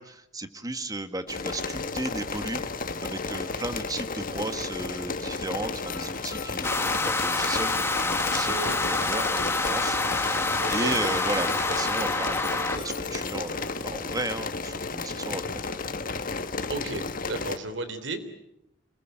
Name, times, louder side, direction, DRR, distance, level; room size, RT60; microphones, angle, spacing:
voice 1, 0.0-2.7 3.0-16.1, right 2 dB, 20° right, 9 dB, 1.7 m, -35 dB
sound 1, 1.3-17.6, left 4 dB, 50° left, 1.5 m, -33 dB
sound 2, 5.9-13.3, left 9 dB, 80° left, 3.0 m, -44 dB
sound 3, 6.6-12.8, left 2 dB, 15° left, 1.6 m, -27 dB
voice 2, 10.6-11.0 16.7-18.2, right 2 dB, 80° right, 10 dB, 3.6 m, -34 dB
27.5 x 21.5 x 9.1 m, 0.85 s
head